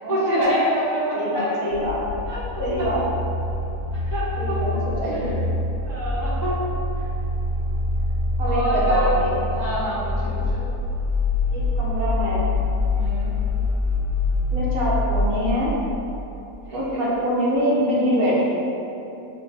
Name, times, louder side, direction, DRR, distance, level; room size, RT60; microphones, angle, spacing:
voice 1, 0.1-1.5 2.3-2.4 3.9-4.8 5.1-5.3 5.8-6.6 8.4-9.1 9.5-10.6 12.9-13.3 16.7-17.1, equal, 15° left, -11 dB, 0.8 m, -26 dB
voice 2, 1.1-2.0 2.6-3.0 4.4-5.4 8.4-9.4 11.5-12.4 14.5-15.7 16.7-18.6, equal, 65° right, -6 dB, 1.2 m, -24 dB
sound 1, 1.7-16.0, left 2 dB, 65° left, 1.0 m, -25 dB
6.2 x 2.3 x 3.3 m, 2.9 s
omnidirectional pair, 1.7 m